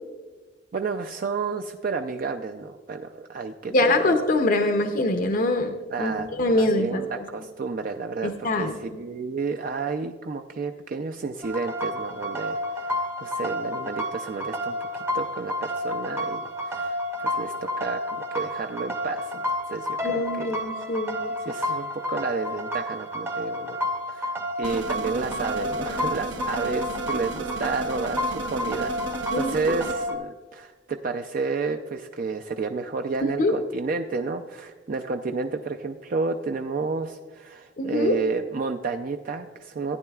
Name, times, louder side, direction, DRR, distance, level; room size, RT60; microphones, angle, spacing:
voice 1, 0.7-4.2 5.9-18.0 18.3-20.6 21.4-23.8 24.1-24.3 24.6-40.0, right 4 dB, 50° right, 5 dB, 0.4 m, -31 dB
voice 2, 3.7-7.2 8.2-8.7 20.0-21.3 29.3-29.5 33.2-33.5 37.8-38.2, left 2 dB, 50° left, 6 dB, 0.6 m, -24 dB
sound 1, 11.4-30.2, left 1 dB, 15° right, 0.6 m, -30 dB
sound 2, 24.6-29.9, right 3 dB, 80° right, 0.9 m, -34 dB
15.0 x 9.7 x 2.3 m, 1.3 s
head